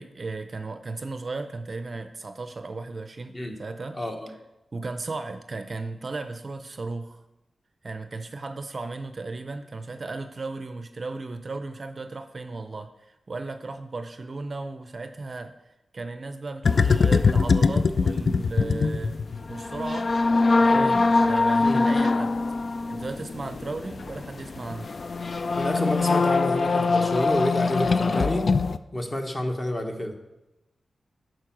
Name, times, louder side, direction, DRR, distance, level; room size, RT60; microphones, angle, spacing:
voice 1, 0.0-4.0 4.7-7.2 7.8-19.2 19.5-20.1 20.6-22.4 22.9-25.0, right 3 dB, 40° right, 9 dB, 0.5 m, -35 dB
voice 2, 3.9-4.3 20.7-21.0 21.6-21.8 25.5-28.5 28.9-30.1, left 1 dB, 20° left, 4 dB, 1.1 m, -29 dB
Ship sinking down a plughole, 16.6-28.8, left 4 dB, 50° left, 0.3 m, -23 dB
11.5 x 4.6 x 6.0 m, 0.96 s
wide cardioid pair, 130°, 0 cm